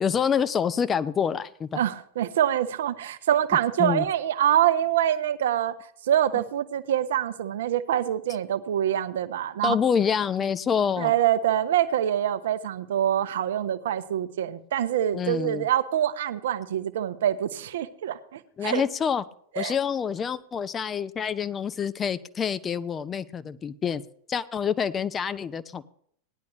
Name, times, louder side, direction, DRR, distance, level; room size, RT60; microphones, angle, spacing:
voice 1, 0.0-1.8 3.8-4.1 9.6-11.1 15.1-15.7 18.6-19.2 19.6-24.0 24.3-25.8, left 7 dB, 20° left, 0.6 m, -27 dB
voice 2, 1.8-5.7 6.1-9.8 11.0-18.8 19.5-19.7, right 11 dB, 60° right, 0.8 m, -25 dB
18.0 x 10.5 x 3.1 m
figure-of-eight pair, 90°, 0 cm